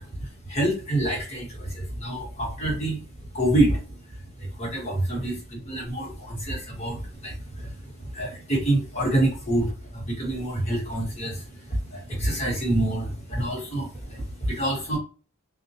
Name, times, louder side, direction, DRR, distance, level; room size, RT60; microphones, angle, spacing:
voice 1, 0.0-15.0, right 1 dB, 30° left, -3 dB, 1.0 m, -27 dB
2.2 x 2.1 x 2.6 m, 0.38 s
head